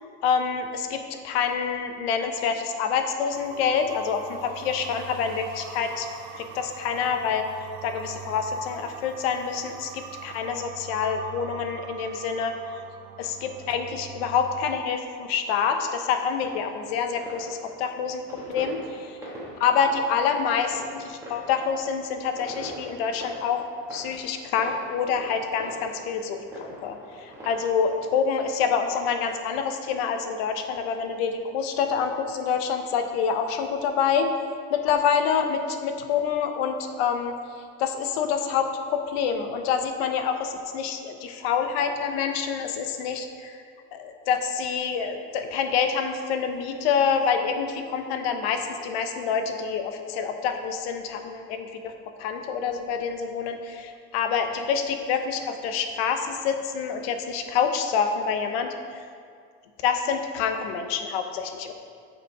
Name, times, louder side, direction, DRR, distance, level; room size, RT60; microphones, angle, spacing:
voice 1, 0.2-7.5 7.8-12.6 13.2-19.3 19.6-34.3 34.7-37.3 37.8-43.6 43.9-51.9 52.2-58.7 59.8-61.7, left 6 dB, 80° left, 6 dB, 0.8 m, -27 dB
sound 1, 3.3-14.8, right 8 dB, 70° right, 0.6 m, -43 dB
sound 2, 16.3-28.1, right 1 dB, 10° right, 1.5 m, -43 dB
6.8 x 5.7 x 4.7 m, 2.2 s
cardioid pair, 155°, 31 cm